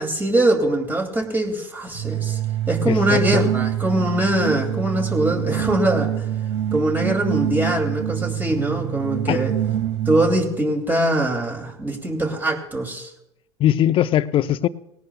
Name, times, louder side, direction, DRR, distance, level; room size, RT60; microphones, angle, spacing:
voice 1, 0.0-2.4 2.7-6.3 6.7-9.5 10.1-13.1, right 1 dB, 15° right, 3 dB, 2.7 m, -22 dB
sound 1, 1.9-10.5, right 11 dB, 80° right, 1.5 m, -25 dB
voice 2, 2.9-3.4 9.3-9.4 13.6-14.7, left 12 dB, 40° left, 14 dB, 0.7 m, -20 dB
19.5 x 17.5 x 2.3 m, 0.86 s
hypercardioid pair, 80°, 14 cm